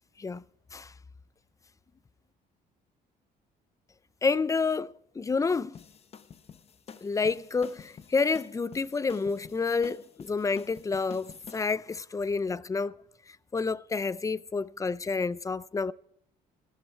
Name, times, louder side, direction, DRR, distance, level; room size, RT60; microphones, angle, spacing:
voice 1, 4.2-5.8 7.0-13.0 13.5-15.9, left 4 dB, 20° left, 0.5 m, -29 dB
sound 1, 5.7-11.6, left 7 dB, 35° left, 0.8 m, -48 dB
15.5 x 13.0 x 4.5 m
cardioid pair, 110°, 17 cm